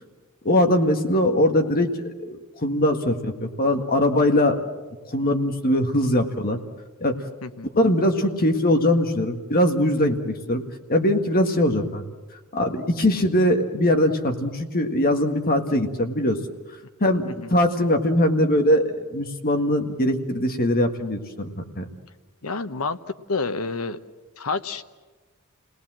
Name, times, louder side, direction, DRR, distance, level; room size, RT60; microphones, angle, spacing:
voice 1, 0.5-1.9 2.2-4.6 5.0-6.6 7.0-7.2 7.8-10.6 10.9-12.0 12.5-16.4 17.0-21.9, left 1 dB, 45° left, 5 dB, 1.7 m, -21 dB
voice 2, 22.4-23.0 23.3-24.0 24.4-24.9, left 4 dB, 75° left, 10 dB, 1.1 m, -28 dB
29.5 x 19.0 x 7.6 m, 1.3 s
head